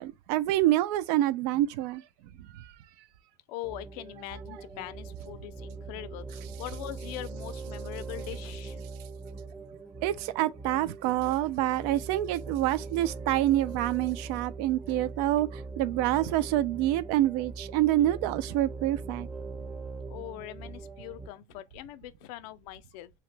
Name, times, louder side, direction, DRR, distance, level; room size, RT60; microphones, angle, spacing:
voice 1, 0.0-2.0 2.5-2.7 10.0-19.3, right 14 dB, 85° right, 0.4 m, -27 dB
voice 2, 3.5-8.8 20.1-23.1, left 15 dB, 85° left, 0.4 m, -42 dB
sound 1, 3.6-21.3, right 3 dB, 10° right, 0.4 m, -41 dB
2.8 x 2.1 x 3.2 m
cardioid pair, 135°, 20 cm